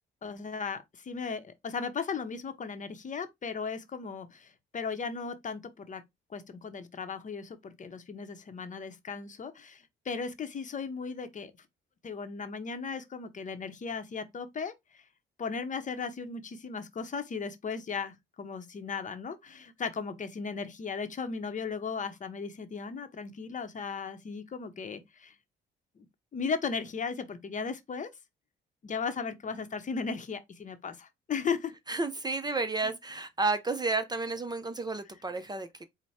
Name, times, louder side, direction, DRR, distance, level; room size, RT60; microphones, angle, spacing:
voice 1, 0.2-6.0 6.3-11.5 12.0-15.0 15.4-25.3 26.0-26.1 26.3-28.1 28.8-31.7 32.8-32.9, left 5 dB, 40° left, 0.8 m, -36 dB
voice 2, 31.9-35.8, right 3 dB, 20° right, 0.5 m, -31 dB
4.5 x 2.1 x 4.1 m
cardioid pair, 90°, 20 cm